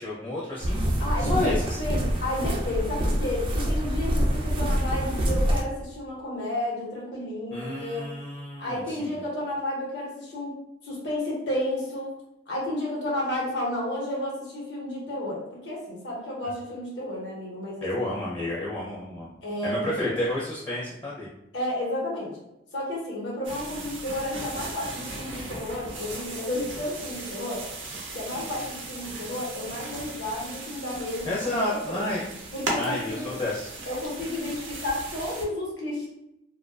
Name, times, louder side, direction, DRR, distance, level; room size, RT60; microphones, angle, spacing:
voice 1, 0.0-0.8 1.2-1.8 7.5-9.1 17.8-19.3 19.6-21.3 31.2-32.2 32.7-33.7, left 1 dB, 25° left, -7 dB, 0.5 m, -30 dB
sound 1, 0.6-5.6, equal, 30° right, 0.3 m, -26 dB
voice 2, 1.0-1.5 1.8-8.1 8.6-10.5 10.8-12.1 12.5-18.0 19.4-20.1 21.5-22.3 22.7-27.6 28.1-32.1 32.5-33.3 33.9-36.1, left 1 dB, 70° left, -3 dB, 0.9 m, -32 dB
sound 2, 23.4-35.4, right 2 dB, 85° right, 0.6 m, -37 dB
2.3 x 2.3 x 2.3 m, 0.86 s
head